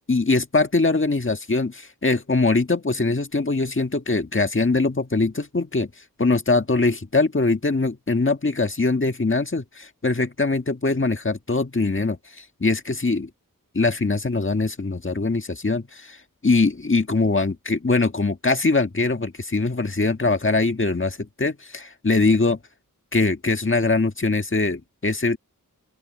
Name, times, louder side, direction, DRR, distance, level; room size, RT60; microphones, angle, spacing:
voice 1, 0.1-5.9 6.2-13.3 13.7-22.6 23.1-25.4, left 3 dB, 35° left, 1.6 m, -22 dB
open air
wide cardioid pair, 55°, 34 cm